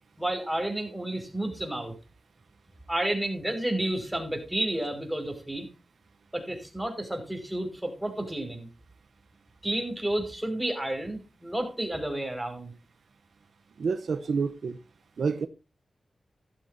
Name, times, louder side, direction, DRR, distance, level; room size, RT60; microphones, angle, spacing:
voice 1, 0.2-1.9 2.9-5.7 6.3-8.7 9.6-12.7, right 1 dB, 10° right, 5.3 m, -31 dB
voice 2, 13.8-14.8 15.2-15.5, right 5 dB, 80° right, 0.8 m, -28 dB
14.5 x 12.5 x 2.7 m
cardioid pair, 55°, 0 cm